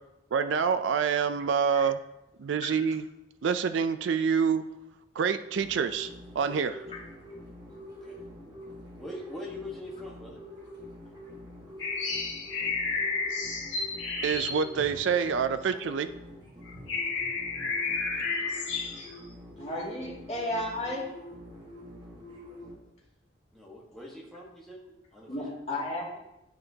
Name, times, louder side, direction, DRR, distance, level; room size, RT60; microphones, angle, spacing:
voice 1, 0.3-2.0 2.4-3.0 3.4-4.6 5.2-6.1 6.4-6.9 14.2-16.1, right 6 dB, 70° right, 11 dB, 0.4 m, -27 dB
sound 1, 5.5-22.8, equal, 25° right, 1.5 m, -46 dB
voice 2, 8.0-8.6 9.0-10.4 23.5-24.8 25.1-25.5, left 1 dB, ahead, -4 dB, 1.3 m, -43 dB
sound 2, 11.8-15.7 16.3-16.4 16.7-19.2, left 4 dB, 80° left, 1.5 m, -32 dB
voice 3, 19.6-21.1 25.3-26.2, left 1 dB, 35° left, -6 dB, 2.2 m, -33 dB
10.0 x 5.3 x 2.8 m, 0.89 s
head